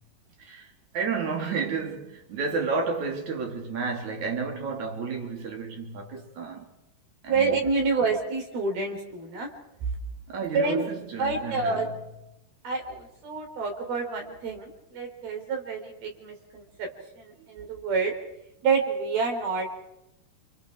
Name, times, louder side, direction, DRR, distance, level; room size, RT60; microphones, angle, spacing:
voice 1, 0.4-6.7 7.2-7.7 10.3-11.9 17.4-17.5, right 4 dB, 45° right, 4.5 m, -31 dB
voice 2, 7.3-9.5 10.5-10.9 11.2-11.9 12.6-16.9 17.2-18.1 18.6-19.8, right 4 dB, 65° right, 6.3 m, -28 dB
28.5 x 28.0 x 4.8 m
omnidirectional pair, 4.7 m